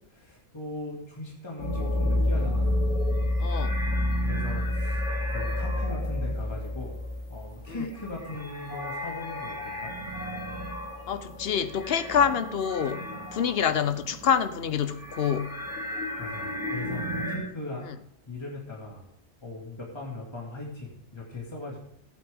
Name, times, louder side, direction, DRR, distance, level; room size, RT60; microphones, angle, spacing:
voice 1, 0.1-2.9 4.2-7.0 7.3-9.9 16.2-18.0 18.3-19.0 19.4-21.8, left 2 dB, 25° left, -4 dB, 2.3 m, -39 dB
sound 1, 1.6-14.4 14.7-17.4, left 1 dB, 90° left, 3.3 m, -30 dB
voice 2, 3.4-3.7 7.7-7.8 11.1-13.0 13.3-15.5, left 7 dB, 60° left, 10 dB, 0.9 m, -26 dB
15.0 x 8.7 x 3.6 m, 0.74 s
omnidirectional pair, 1.2 m